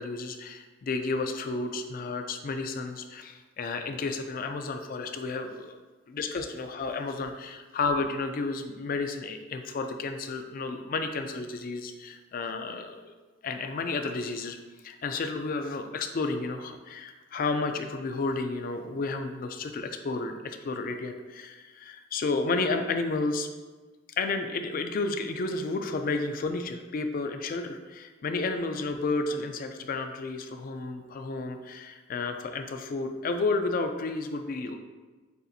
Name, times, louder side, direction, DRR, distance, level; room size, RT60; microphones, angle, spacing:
voice 1, 0.0-5.8 6.1-13.1 13.4-14.6 14.8-23.5 24.2-34.7, left 3 dB, 45° left, 7 dB, 0.4 m, -32 dB
6.8 x 2.4 x 2.6 m, 1.3 s
head